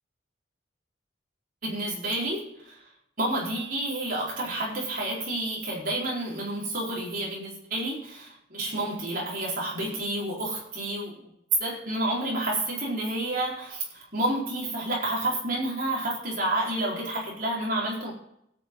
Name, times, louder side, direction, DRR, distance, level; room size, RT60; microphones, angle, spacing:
voice 1, 1.6-2.7 3.2-11.3 11.6-18.1, right 1 dB, 45° right, -4 dB, 4.4 m, -30 dB
16.5 x 9.2 x 3.9 m, 0.75 s
head